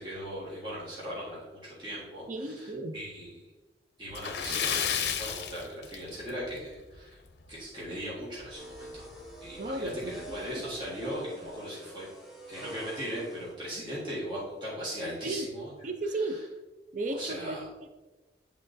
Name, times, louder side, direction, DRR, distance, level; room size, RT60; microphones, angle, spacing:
voice 1, 0.0-3.4 4.0-7.2 7.5-9.1 9.4-12.1 12.5-15.7 16.2-16.4 17.1-17.6, equal, 25° right, -8 dB, 1.6 m, -38 dB
voice 2, 2.3-3.0 9.6-10.6 15.2-15.5 15.8-16.4 16.9-17.9, right 2 dB, 45° right, 7 dB, 0.5 m, -35 dB
Splash splatter, 4.1-6.5 6.8-7.0 7.4-7.5 8.9-9.0 9.4-9.5 10.1-10.3, left 8 dB, 65° left, 0.5 m, -32 dB
sound 1, 8.5-13.5, right 1 dB, ahead, 0.9 m, -46 dB
10.0 x 3.7 x 2.6 m, 1.2 s
head